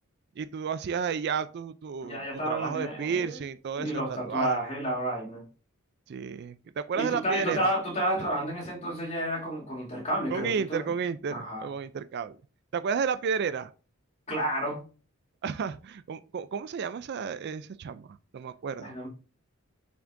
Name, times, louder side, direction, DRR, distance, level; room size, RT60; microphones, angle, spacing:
voice 1, 0.4-4.6 6.1-7.7 10.3-12.4 12.7-13.7 15.4-18.9, right 6 dB, 50° right, 0.3 m, -32 dB
voice 2, 2.0-3.3 3.8-5.4 6.9-10.9 11.3-11.7 14.3-14.8 18.8-19.1, right 1 dB, 30° left, 2.7 m, -31 dB
7.2 x 6.0 x 2.6 m
head